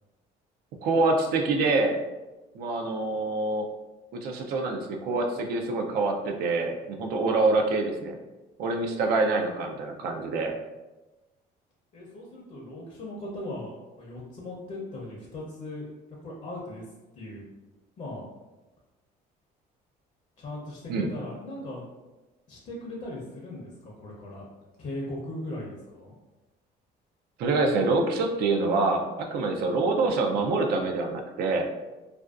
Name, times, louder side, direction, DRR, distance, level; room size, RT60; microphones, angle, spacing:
voice 1, 0.8-2.0 2.5-3.7 4.1-8.2 8.6-10.6 20.9-21.1 27.4-31.7, right 3 dB, 70° right, 3 dB, 0.4 m, -26 dB
voice 2, 11.9-15.9 16.2-16.8 17.1-17.4 18.0-18.2 20.4-21.9 22.5-24.4 24.8-26.1, left 1 dB, 45° left, -3 dB, 0.6 m, -38 dB
2.4 x 2.2 x 2.3 m, 1.1 s
cardioid pair, 110°, 17 cm